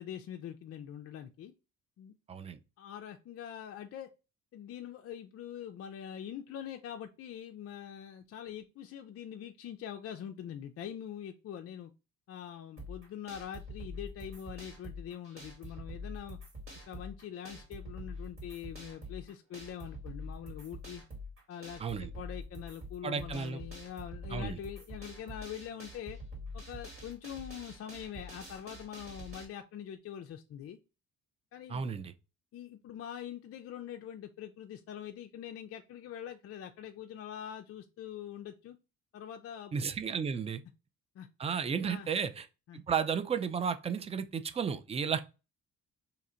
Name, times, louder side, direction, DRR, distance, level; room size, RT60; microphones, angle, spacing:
voice 1, 0.0-1.5 2.0-2.1 2.8-4.1 4.5-11.9 12.3-16.4 16.9-21.0 21.5-26.2 26.5-30.8 31.5-31.9 32.5-38.8 39.1-39.8 41.2-41.3 41.8-42.1 42.7-42.8, left 9 dB, 45° left, 0.4 m, -44 dB
voice 2, 2.3-2.6 21.8-22.1 23.0-23.6 24.3-24.6 31.7-32.1 39.7-40.6 41.4-42.5 42.7-45.2, right 6 dB, 20° right, 0.3 m, -33 dB
sound 1, 12.8-29.4, left 1 dB, 40° right, 1.9 m, -46 dB
2.8 x 2.5 x 4.2 m
cardioid pair, 90°, 32 cm